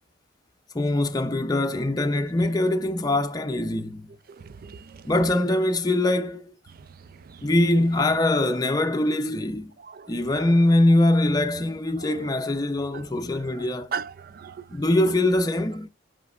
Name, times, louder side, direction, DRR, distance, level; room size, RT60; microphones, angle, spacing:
voice 1, 0.7-4.1 5.0-6.5 7.4-9.7 10.1-13.9 14.7-15.9, left 1 dB, 20° left, 0.6 m, -23 dB
voice 2, 4.4-5.0 7.3-7.5 9.8-10.4 12.0-12.1 12.9-13.0 13.4-14.6 15.0-15.1, right 6 dB, 50° right, 0.4 m, -38 dB
8.5 x 5.1 x 2.4 m
head